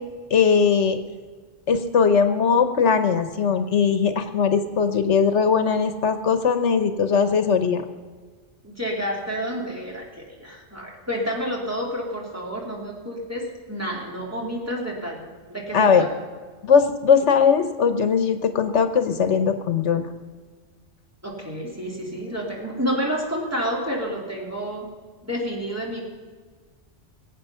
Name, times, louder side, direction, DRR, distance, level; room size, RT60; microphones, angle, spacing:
voice 1, 0.3-1.0 1.7-7.8 15.7-16.1 16.6-20.1, left 6 dB, 80° left, 9 dB, 1.2 m, -20 dB
voice 2, 8.6-16.1 21.2-24.9 25.2-26.0, equal, 15° right, -3 dB, 3.1 m, -29 dB
22.0 x 8.8 x 5.6 m, 1.5 s
omnidirectional pair, 1.2 m